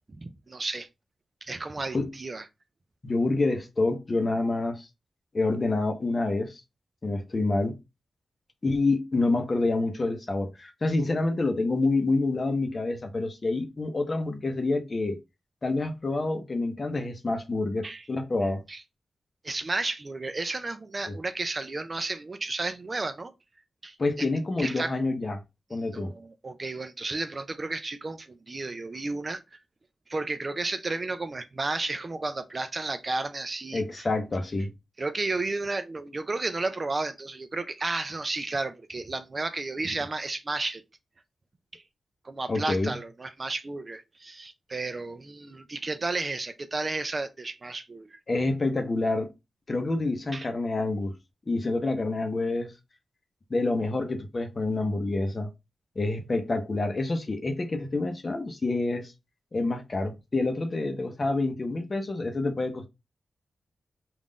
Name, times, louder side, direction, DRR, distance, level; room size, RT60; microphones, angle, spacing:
voice 1, 0.1-0.9 1.4-2.4 17.8-18.1 18.7-18.8 19.4-23.3 23.8-24.3 24.6-24.9 25.7-29.6 30.1-34.1 35.0-40.8 41.7-41.8 42.2-48.2 50.3-50.5, right 3 dB, 30° right, 0.3 m, -33 dB
voice 2, 3.0-4.9 5.3-6.6 7.0-7.8 8.6-15.2 15.6-18.6 21.1-21.2 24.0-25.4 25.7-26.1 33.7-34.7 42.5-42.9 48.3-49.3 49.7-51.1 51.5-52.7 53.5-55.5 56.0-59.1 59.5-62.9, left 2 dB, 30° left, 0.7 m, -27 dB
3.7 x 2.4 x 3.7 m
wide cardioid pair, 150°, 0 cm